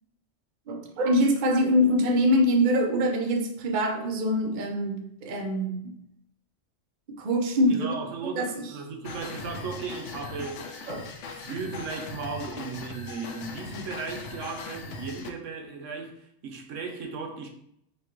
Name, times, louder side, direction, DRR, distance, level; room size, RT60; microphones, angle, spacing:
voice 1, 0.7-5.9 7.1-7.9 8.2-8.7 10.9-11.1, equal, 45° right, 0.7 m, -24 dB
voice 2, 7.7-10.7 10.9-17.5, right 4 dB, 75° right, 1.0 m, -36 dB
sound 1, 9.0-15.3, left 4 dB, 70° left, 0.9 m, -39 dB
3.7 x 2.9 x 4.4 m
omnidirectional pair, 1.3 m